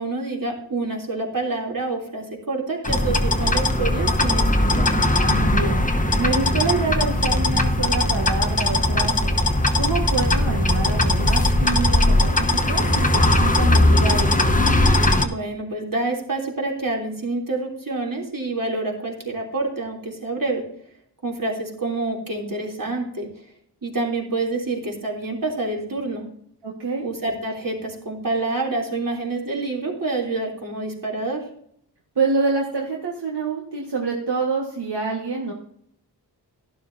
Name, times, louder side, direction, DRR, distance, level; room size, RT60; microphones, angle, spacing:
voice 1, 0.0-4.9 15.2-20.6 21.2-23.3 23.8-26.2 27.0-31.4, right 3 dB, 55° right, -1 dB, 3.3 m, -27 dB
sound 1, 2.8-15.3, left 1 dB, 20° left, 1.1 m, -19 dB
voice 2, 5.2-5.8 6.2-9.3 9.8-14.4 26.6-27.0 32.1-35.5, right 4 dB, 80° right, -1 dB, 1.7 m, -26 dB
12.0 x 11.5 x 2.8 m, 0.65 s
wide cardioid pair, 60°, 40 cm